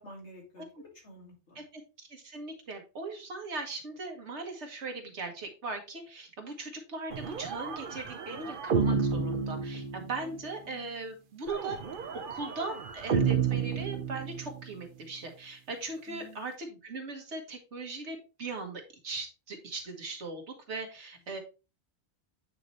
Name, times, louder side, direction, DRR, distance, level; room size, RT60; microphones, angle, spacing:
voice 1, 0.0-1.6 8.3-8.5 10.2-10.4 10.6-10.9 16.1-16.4, equal, 85° left, -1 dB, 2.6 m, -50 dB
voice 2, 1.5-11.8 12.3-21.4, right 3 dB, 80° right, 4 dB, 1.7 m, -39 dB
sound 1, 7.1-10.4 11.5-14.7, right 6 dB, 55° right, 0.9 m, -31 dB
8.7 x 4.1 x 3.1 m, 0.32 s
omnidirectional pair, 1.2 m